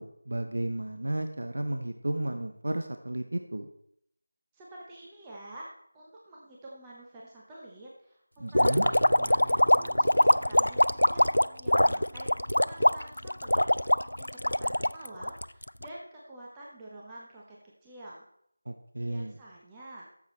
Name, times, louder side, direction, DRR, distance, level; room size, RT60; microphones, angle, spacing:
voice 1, 0.0-3.7 8.4-8.9 18.7-19.4, right 1 dB, 65° right, 6 dB, 0.8 m, -33 dB
voice 2, 4.5-5.7 5.9-11.3 11.6-17.6 17.8-18.3 19.0-20.1, right 1 dB, 10° right, -5 dB, 1.0 m, -48 dB
sound 1, 8.5-15.9, left 1 dB, 85° left, 0.3 m, -23 dB
sound 2, 8.6-14.8, right 1 dB, 30° right, 3.6 m, -51 dB
11.0 x 7.2 x 4.2 m, 0.71 s
figure-of-eight pair, 165°, 0 cm